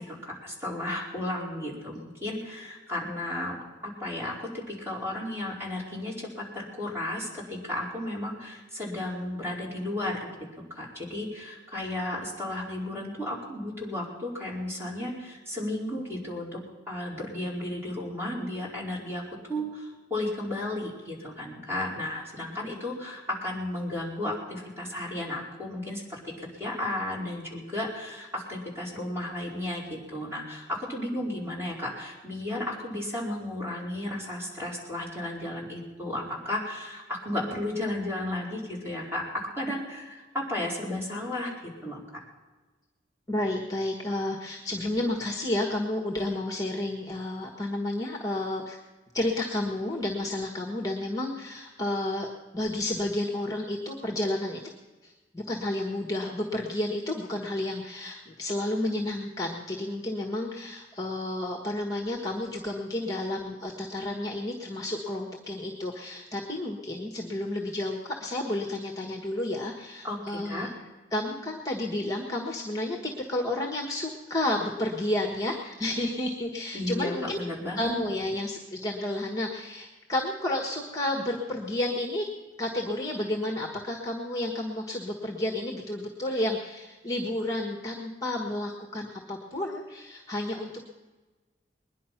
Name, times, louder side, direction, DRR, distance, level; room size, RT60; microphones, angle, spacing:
voice 1, 0.0-10.3 10.7-16.6 16.9-39.2 39.6-42.2 70.0-70.7 76.7-77.9, left 1 dB, 15° right, -6 dB, 4.6 m, -34 dB
voice 2, 43.3-48.8 49.1-54.7 55.0-70.7 71.1-77.4 77.8-82.3 82.6-90.9, left 1 dB, 20° left, 2 dB, 1.4 m, -31 dB
21.0 x 10.5 x 5.9 m, 1.3 s
head